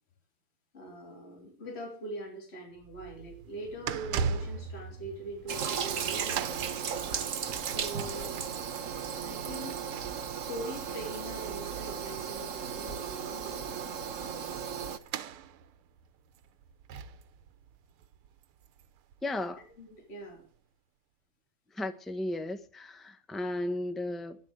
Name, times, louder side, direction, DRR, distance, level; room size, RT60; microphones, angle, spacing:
voice 1, 0.7-6.5 7.7-8.4 9.2-9.8 10.5-14.4 19.8-20.4, right 1 dB, 30° left, 3.5 m, -42 dB
sound 1, 2.8-19.1 19.4-19.6 20.4-20.5, right 6 dB, 85° right, 1.8 m, -41 dB
Toilet flush, 5.5-15.0, right 7 dB, 45° right, 1.2 m, -35 dB
voice 2, 19.2-19.7 21.7-24.4, left 1 dB, ahead, 0.6 m, -35 dB
12.0 x 11.0 x 7.9 m
omnidirectional pair, 2.3 m